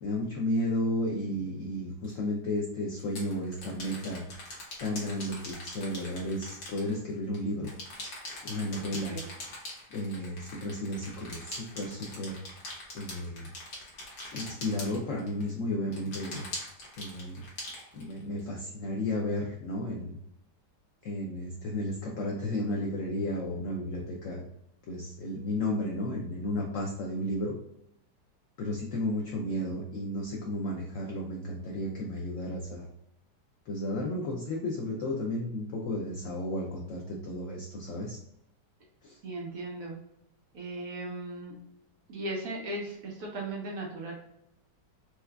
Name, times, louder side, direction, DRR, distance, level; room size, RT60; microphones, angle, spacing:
voice 1, 0.0-4.3 4.8-7.7 8.4-9.2 9.9-12.4 12.9-13.5 14.3-16.5 17.0-17.4 17.9-20.2 21.0-24.5 24.9-27.5 28.6-32.9 33.7-38.2 39.0-39.2, left 1 dB, 85° left, -2 dB, 0.7 m, -33 dB
sound 1, 2.0-2.1 3.0-7.4 7.6-15.5 15.9-18.4, left 2 dB, 70° left, 1.6 m, -42 dB
voice 2, 39.2-40.0 40.5-41.5 42.1-44.1, right 2 dB, 60° right, -2 dB, 1.1 m, -37 dB
4.5 x 2.3 x 2.2 m, 0.80 s
omnidirectional pair, 1.9 m